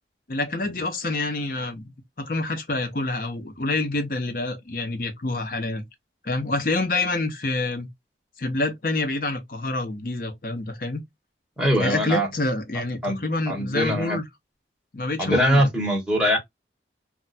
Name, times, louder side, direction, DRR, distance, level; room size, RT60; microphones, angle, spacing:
voice 1, 0.3-1.9 2.2-5.8 6.2-7.9 8.4-11.0 11.8-14.2 14.9-15.7, left 2 dB, 50° left, 0.8 m, -27 dB
voice 2, 11.6-12.3 13.0-14.2 15.2-16.4, equal, 5° right, 1.1 m, -22 dB
2.4 x 2.2 x 4.0 m
head